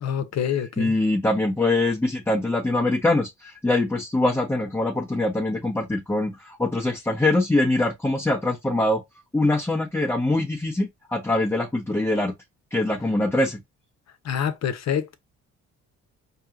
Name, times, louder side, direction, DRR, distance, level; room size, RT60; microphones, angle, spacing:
voice 1, 0.0-0.9 14.2-15.1, left 8 dB, 60° left, 0.9 m, -26 dB
voice 2, 0.8-9.0 9.3-12.3 12.7-13.6, left 2 dB, 10° left, 0.8 m, -23 dB
4.6 x 2.9 x 2.6 m
cardioid pair, 90°, 30 cm